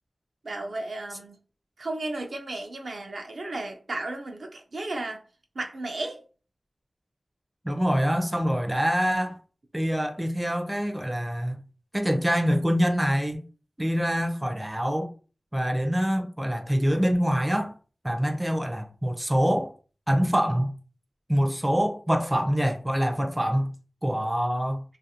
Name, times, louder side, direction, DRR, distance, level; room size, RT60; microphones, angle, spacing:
voice 1, 0.4-1.4 1.8-5.2 5.5-6.2, right 2 dB, 80° right, 0.5 m, -34 dB
voice 2, 7.6-9.4 9.7-11.6 11.9-13.5 13.8-15.1 15.5-17.7 18.0-19.7 20.1-20.7 21.3-23.7 24.0-24.8, equal, 15° right, 0.4 m, -25 dB
2.4 x 2.4 x 2.8 m
wide cardioid pair, 65°, 0 cm